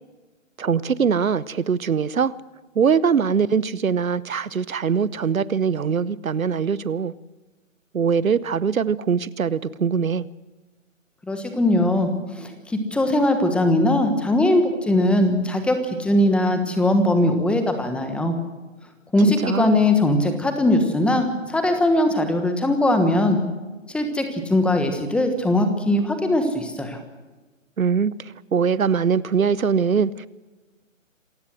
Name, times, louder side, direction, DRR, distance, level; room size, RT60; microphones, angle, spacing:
voice 1, 0.6-2.3 2.7-7.1 7.9-10.3 19.4-19.7 27.8-28.1 28.5-30.3, right 6 dB, 90° right, 0.9 m, -22 dB
voice 2, 11.3-12.1 12.3-18.3 19.1-23.4 23.9-27.0, left 1 dB, 5° left, 1.3 m, -20 dB
27.0 x 15.5 x 6.4 m
figure-of-eight pair, 145°, 40 cm